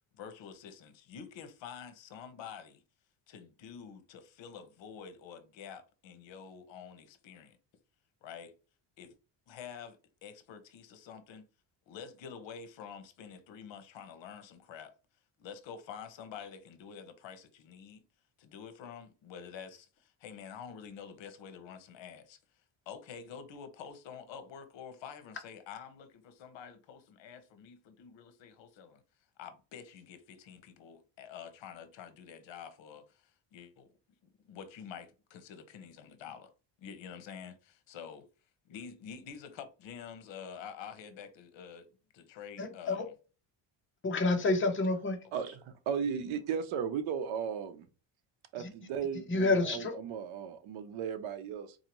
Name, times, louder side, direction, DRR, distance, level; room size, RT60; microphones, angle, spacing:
voice 1, 0.1-2.8 3.3-7.6 8.2-8.5 9.0-9.1 9.5-11.5 11.9-14.9 15.4-18.0 18.4-22.4 22.9-29.0 29.4-33.9 34.4-36.5 36.8-38.3 38.7-41.9 42.1-43.1 45.4-45.6, left 7 dB, 65° left, 0.9 m, -48 dB
voice 2, 42.6-43.0 44.0-45.2 48.6-48.7 49.3-49.9, left 3 dB, 25° left, 0.8 m, -29 dB
voice 3, 45.3-47.9 48.5-51.8, right 7 dB, 80° right, 0.8 m, -36 dB
4.1 x 2.7 x 3.0 m
cardioid pair, 145°, 48 cm